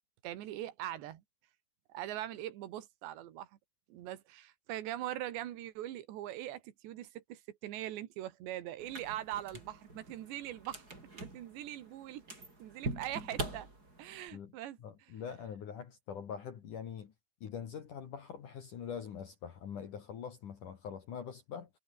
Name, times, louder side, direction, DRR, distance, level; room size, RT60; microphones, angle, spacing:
voice 1, 0.2-1.2 1.9-3.5 3.9-10.9 11.1-12.2 12.6-13.7 14.0-14.8, right 13 dB, 80° right, 4.0 m, -41 dB
sound 1, 8.8-14.3, right 2 dB, 20° right, 7.0 m, -44 dB
voice 2, 14.8-17.1 17.4-21.7, left 7 dB, 55° left, 3.2 m, -44 dB
omnidirectional pair, 5.0 m